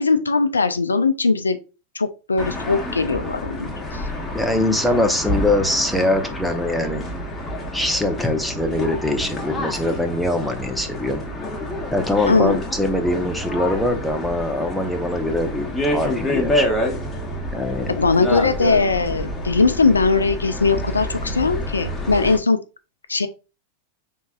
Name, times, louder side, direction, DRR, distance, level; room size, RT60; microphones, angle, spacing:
voice 1, 0.0-1.6 1.9-4.0 12.3-12.6 18.0-22.6 23.1-23.3, left 4 dB, 75° left, 10 dB, 0.4 m, -20 dB
sound 1, 2.4-22.4, left 1 dB, 15° left, 1.1 m, -28 dB
voice 2, 4.3-7.0 7.7-11.2 11.9-16.7 17.5-18.0, left 1 dB, ahead, 4 dB, 0.7 m, -22 dB
5.2 x 3.7 x 2.4 m, 0.31 s
figure-of-eight pair, 90°, 0 cm